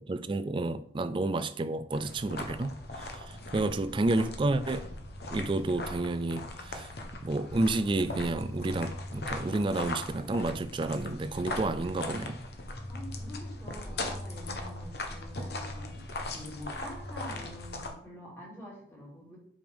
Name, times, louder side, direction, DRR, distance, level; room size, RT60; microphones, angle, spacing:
voice 1, 0.1-4.9 5.3-6.9 7.2-12.4, right 2 dB, 25° right, 12 dB, 0.3 m, -30 dB
sound 1, 1.9-17.9, left 2 dB, 60° left, 1.0 m, -39 dB
voice 2, 3.3-3.9 12.9-19.4, left 1 dB, 15° left, -4 dB, 2.5 m, -47 dB
7.6 x 5.1 x 3.5 m, 0.63 s
head